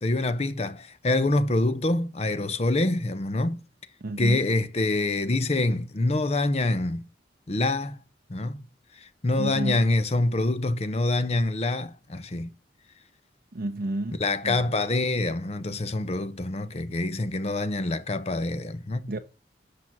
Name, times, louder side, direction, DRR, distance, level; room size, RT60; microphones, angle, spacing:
voice 1, 0.0-3.6 4.2-7.1 7.5-8.0 8.3-8.6 8.9-12.5 14.2-19.1, left 2 dB, 35° left, 0.7 m, -26 dB
voice 2, 4.0-4.4 9.4-9.8 13.5-14.7 19.1-19.2, right 2 dB, 50° right, 0.7 m, -31 dB
8.5 x 6.1 x 5.9 m
head